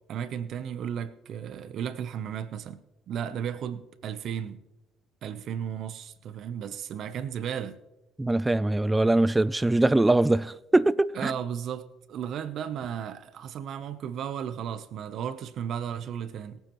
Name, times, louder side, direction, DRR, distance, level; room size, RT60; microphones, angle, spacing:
voice 1, 0.0-2.8 3.1-4.6 5.2-7.8 11.1-16.6, right 8 dB, 60° right, 0.8 m, -34 dB
voice 2, 8.2-11.3, right 2 dB, 15° right, 0.3 m, -22 dB
22.5 x 9.3 x 3.1 m
supercardioid pair, 85°, 0 cm